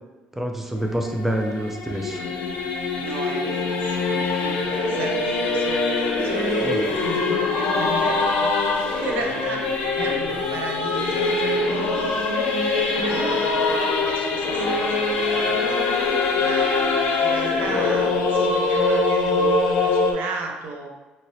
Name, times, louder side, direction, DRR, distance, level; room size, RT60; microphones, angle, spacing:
voice 1, 0.3-2.2 6.6-6.8, right 1 dB, 10° right, 2 dB, 0.4 m, -27 dB
Singing / Musical instrument, 0.7-20.1, left 3 dB, 85° left, 0.5 m, -23 dB
voice 2, 3.0-5.9 6.2-15.8 16.4-20.9, right 3 dB, 75° right, 1 dB, 0.6 m, -34 dB
2.8 x 2.7 x 3.0 m, 1.1 s
cardioid pair, 100°, 3 cm